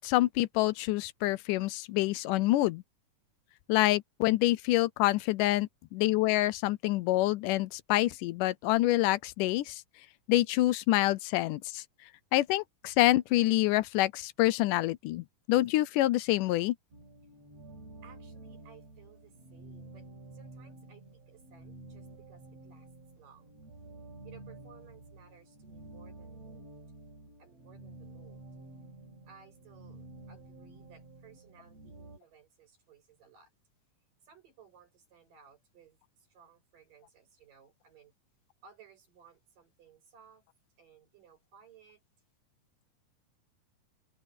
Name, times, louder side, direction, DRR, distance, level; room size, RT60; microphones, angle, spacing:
voice 1, 0.0-2.8 3.7-9.8 10.3-11.8 12.3-16.7, left 17 dB, 80° left, 2.1 m, -27 dB
sound 1, 16.9-32.2, right 2 dB, 50° right, 5.8 m, -50 dB
voice 2, 18.0-22.9 23.2-23.5 24.2-26.7 27.4-28.4 29.2-33.5 34.2-38.1 38.6-40.4 40.8-42.0, right 7 dB, 75° right, 8.8 m, -59 dB
open air
omnidirectional pair, 3.8 m